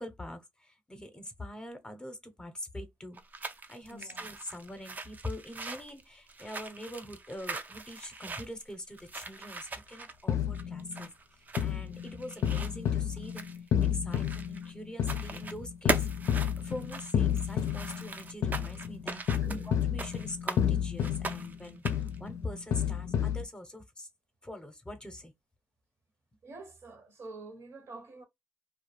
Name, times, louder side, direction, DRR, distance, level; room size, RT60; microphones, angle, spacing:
voice 1, 0.0-3.2 3.7-11.1 11.6-13.4 13.9-16.1 16.6-19.2 19.6-24.1 24.4-25.3, left 1 dB, 15° left, 0.7 m, -43 dB
sound 1, 3.1-14.7 15.0-15.6 15.9-20.6 21.0-22.2, right 3 dB, 30° right, 0.4 m, -40 dB
voice 2, 3.9-4.3 19.3-19.7 26.4-28.2, right 2 dB, 55° right, 0.8 m, -46 dB
sound 2, 10.3-11.1 11.6-23.4, left 9 dB, 70° left, 0.4 m, -31 dB
2.2 x 2.1 x 3.2 m
cardioid pair, 85°, 5 cm